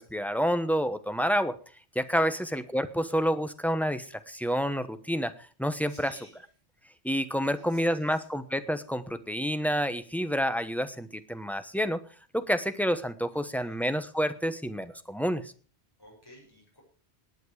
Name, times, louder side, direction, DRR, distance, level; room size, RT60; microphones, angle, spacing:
voice 1, 0.0-1.5 1.9-5.3 5.6-6.2 7.0-12.0 12.3-15.5, equal, ahead, 11 dB, 0.9 m, -29 dB
voice 2, 5.9-6.4 7.5-8.3 13.3-13.8 16.0-16.8, equal, 20° left, -2 dB, 7.1 m, -54 dB
18.5 x 9.5 x 4.8 m, 0.39 s
omnidirectional pair, 1.1 m